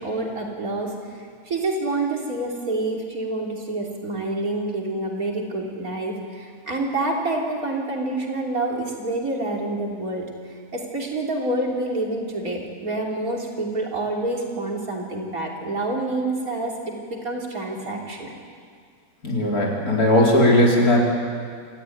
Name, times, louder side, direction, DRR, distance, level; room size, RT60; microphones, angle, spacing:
voice 1, 0.0-10.2 10.7-18.3, right 2 dB, 60° right, -1 dB, 3.7 m, -27 dB
voice 2, 19.2-21.1, left 1 dB, 65° left, -2 dB, 4.5 m, -18 dB
27.0 x 14.0 x 9.3 m, 2.1 s
omnidirectional pair, 1.7 m